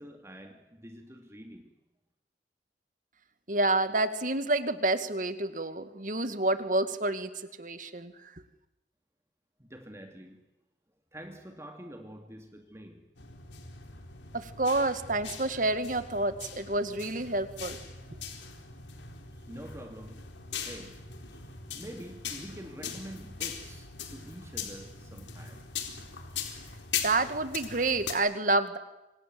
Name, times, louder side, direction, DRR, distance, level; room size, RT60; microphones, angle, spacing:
voice 1, 0.0-1.7 9.6-10.4 11.1-13.2 19.3-20.3 20.6-21.5 21.7-25.7, equal, 15° right, 4 dB, 2.6 m, -46 dB
voice 2, 3.5-7.3 7.6-8.1 14.3-17.8 27.0-28.8, right 2 dB, 45° right, 10 dB, 2.2 m, -28 dB
sound 1, 13.2-28.1, left 7 dB, 90° left, 4.3 m, -40 dB
28.5 x 26.5 x 7.9 m, 0.97 s
head